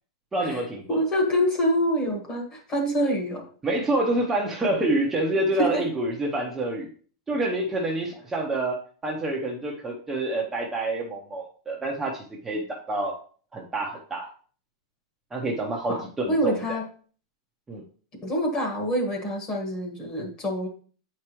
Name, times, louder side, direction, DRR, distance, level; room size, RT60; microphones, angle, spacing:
voice 1, 0.3-1.0 3.6-6.9 7.3-13.1 13.5-14.3 15.3-16.8 17.7-17.8, right 2 dB, 10° right, -2 dB, 0.7 m, -27 dB
voice 2, 0.9-3.5 5.6-5.8 15.9-16.0 16.3-16.8 18.2-20.7, equal, 20° left, 2 dB, 1.5 m, -26 dB
8.4 x 4.8 x 3.0 m, 0.43 s
supercardioid pair, 170°, 3 cm